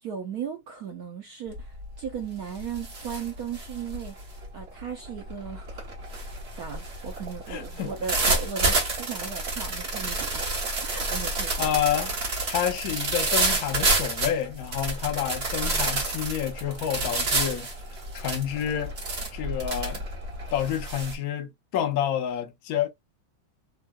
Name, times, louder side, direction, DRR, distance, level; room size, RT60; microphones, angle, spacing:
voice 1, 0.0-4.2 4.5-5.9 6.5-10.5 10.8-11.7, right 7 dB, 70° right, 0.9 m, -36 dB
sound 1, 1.5-1.8 2.2-21.1, right 2 dB, 35° right, 1.1 m, -29 dB
voice 2, 7.5-7.9 11.6-12.1 12.5-17.7 18.1-18.9 19.3-20.0 20.5-22.9, left 10 dB, 75° left, 0.8 m, -29 dB
3.6 x 2.2 x 2.3 m
omnidirectional pair, 2.3 m